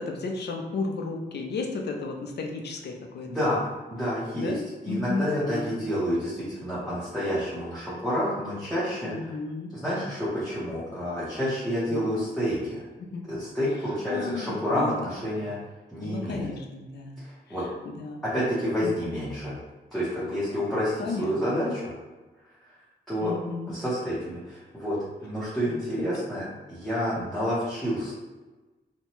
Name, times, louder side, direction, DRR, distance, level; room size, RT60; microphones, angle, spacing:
voice 1, 0.0-3.3 4.3-5.9 9.0-9.7 11.9-12.3 13.0-13.3 14.1-15.1 16.0-17.2 17.5-18.2 18.8-19.0 21.0-21.6 23.2-23.7 25.7-25.8 26.1-26.2, left 3 dB, 70° left, 2 dB, 0.4 m, -34 dB
voice 2, 3.3-3.6 3.9-4.5 4.8-9.1 9.7-12.8 13.3-15.5 15.9-16.5 17.2-17.6 18.2-19.5 19.9-21.8 23.1-23.3 23.7-26.4 26.7-28.1, equal, ahead, -12 dB, 0.7 m, -29 dB
2.7 x 2.2 x 2.9 m, 1.2 s
wide cardioid pair, 170°, 18 cm